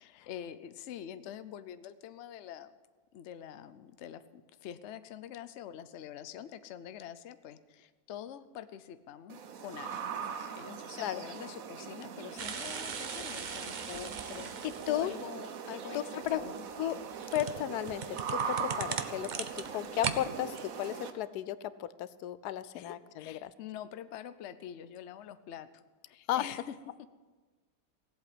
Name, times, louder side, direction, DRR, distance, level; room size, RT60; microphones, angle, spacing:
voice 1, 0.0-2.7 3.1-16.7 22.7-25.7 26.1-27.1, left 10 dB, 55° left, 12 dB, 0.9 m, -46 dB
sound 1, 9.3-21.1, right 7 dB, 65° right, 1.3 m, -40 dB
sound 2, 12.4-15.3 16.2-20.2 20.5-20.6, right 6 dB, 45° right, 0.6 m, -39 dB
voice 2, 15.9-16.4 16.8-17.0 17.3-19.4 19.7-23.5 26.3-26.4, left 12 dB, 85° left, 15 dB, 1.2 m, -34 dB
17.5 x 8.2 x 7.9 m, 1.3 s
omnidirectional pair, 1.6 m